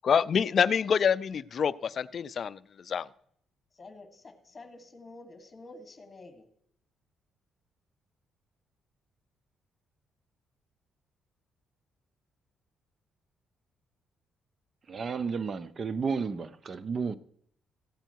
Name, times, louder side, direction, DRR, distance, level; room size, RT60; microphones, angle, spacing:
voice 1, 0.0-2.6 2.9-3.1, left 7 dB, 50° left, 0.4 m, -26 dB
voice 2, 3.7-6.5, left 2 dB, 30° left, 1.5 m, -49 dB
voice 3, 14.9-17.2, right 5 dB, 45° right, 0.6 m, -32 dB
14.5 x 8.9 x 4.6 m
cardioid pair, 90°, 0 cm